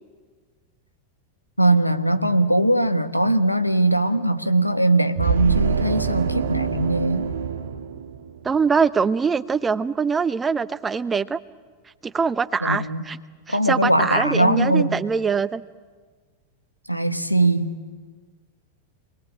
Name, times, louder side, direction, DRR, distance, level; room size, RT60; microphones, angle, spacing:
voice 1, 1.6-7.3 12.6-13.0 13.5-14.9 16.9-17.8, right 1 dB, 90° left, 8 dB, 1.3 m, -20 dB
sound 1, 5.2-8.6, right 6 dB, 60° right, 1.9 m, -25 dB
voice 2, 8.4-11.4 12.0-13.2 13.5-15.6, right 5 dB, 15° right, 17 dB, 0.7 m, -23 dB
27.5 x 20.5 x 8.7 m, 1.5 s
figure-of-eight pair, 90°, 0 cm